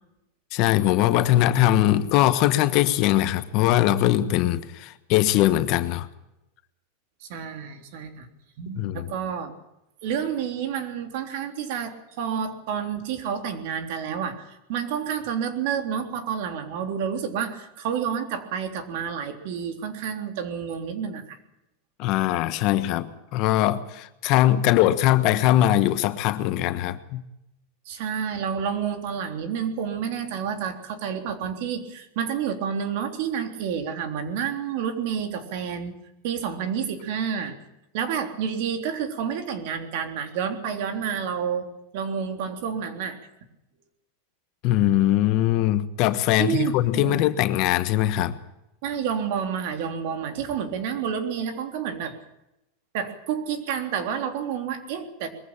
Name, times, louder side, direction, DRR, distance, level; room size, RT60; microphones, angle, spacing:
voice 1, 0.5-6.1 8.7-9.1 22.0-27.2 44.6-48.4, left 14 dB, 45° left, 1.3 m, -21 dB
voice 2, 7.2-8.3 8.6-9.5 10.0-21.4 27.9-36.0 36.2-37.6 37.9-43.2 46.4-47.2 48.8-52.2 52.9-55.3, right 7 dB, 55° right, 3.5 m, -29 dB
21.5 x 15.0 x 8.9 m
supercardioid pair, 155°, 0 cm